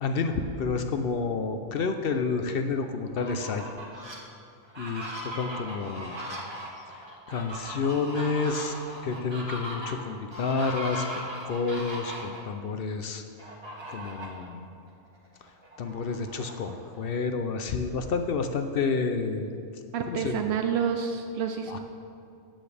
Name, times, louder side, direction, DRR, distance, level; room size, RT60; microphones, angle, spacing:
voice 1, 0.0-3.6 4.8-6.2 6.8-8.7 9.0-11.0 11.4-13.2 13.9-14.6 15.8-19.5 20.1-20.6 21.7-21.8, left 4 dB, 65° left, 7 dB, 0.6 m, -30 dB
Fowl, 3.1-4.2 4.6-12.4 13.4-14.5 14.9-15.0 15.4-17.1, equal, 20° right, 1.4 m, -38 dB
voice 2, 19.9-21.8, right 7 dB, 65° right, 4 dB, 0.7 m, -29 dB
13.5 x 8.9 x 3.3 m, 2.4 s
omnidirectional pair, 1.5 m